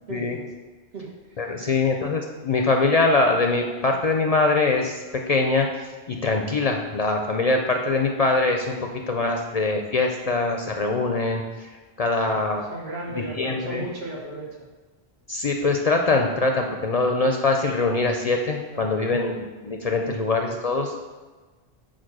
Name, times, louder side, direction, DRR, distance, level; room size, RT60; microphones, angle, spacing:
voice 1, 0.1-0.5 0.9-1.8 12.7-14.7 18.7-19.3 20.2-20.3, right 2 dB, 80° right, -2 dB, 1.6 m, -37 dB
voice 2, 1.4-5.0 5.3-11.7 12.0-12.6 13.1-13.8 15.3-20.9, left 3 dB, 50° left, 3 dB, 0.5 m, -23 dB
5.0 x 4.4 x 6.0 m, 1.3 s
omnidirectional pair, 1.1 m